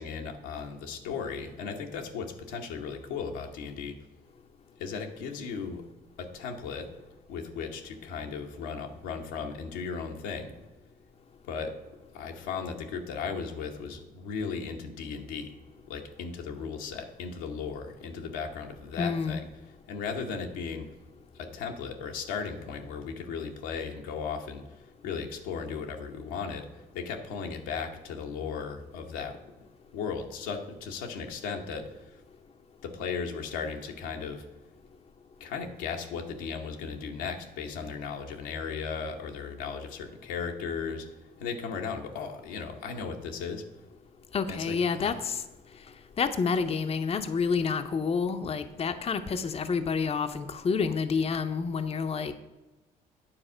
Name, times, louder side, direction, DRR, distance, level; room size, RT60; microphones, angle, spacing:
voice 1, 0.0-4.0 4.8-5.8 6.2-6.9 7.3-10.5 11.5-15.5 15.9-19.5 19.9-20.9 21.4-29.4 29.9-32.2 32.8-34.4 35.4-41.1 41.4-43.6 44.5-45.2, left 5 dB, 85° left, 3 dB, 1.0 m, -36 dB
voice 2, 19.0-19.4 44.3-45.4 46.2-52.3, left 5 dB, 35° left, 8 dB, 0.6 m, -28 dB
8.9 x 4.2 x 6.2 m, 1.1 s
hypercardioid pair, 60°, 18 cm